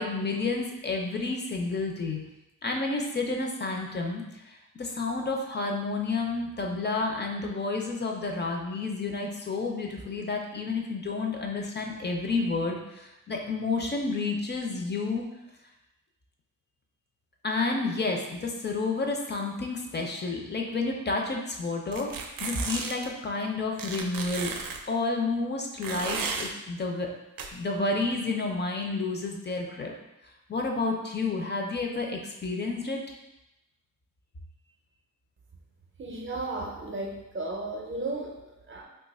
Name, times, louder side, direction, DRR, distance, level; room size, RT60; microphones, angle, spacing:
voice 1, 0.0-2.2 2.6-15.3 17.4-22.1 22.4-24.5 24.9-27.1 27.5-29.9 30.5-33.0, left 3 dB, 30° left, 1 dB, 0.4 m, -30 dB
sound 1, 21.9-23.1 23.8-24.8 25.8-26.5 27.4-27.5, right 4 dB, 85° right, 0.5 m, -33 dB
voice 2, 36.0-38.8, right 2 dB, 35° right, 0 dB, 0.5 m, -35 dB
2.8 x 2.3 x 4.0 m, 0.91 s
wide cardioid pair, 135°, 33 cm